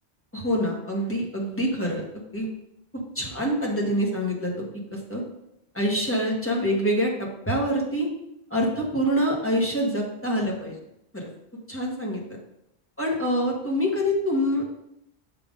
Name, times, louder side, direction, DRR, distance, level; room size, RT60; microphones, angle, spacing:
voice 1, 0.3-2.5 2.9-5.2 5.7-8.1 8.5-10.8 11.1-11.3 11.7-12.4 13.0-14.7, equal, 10° left, -2 dB, 1.3 m, -26 dB
6.8 x 3.8 x 5.2 m, 0.80 s
omnidirectional pair, 1.1 m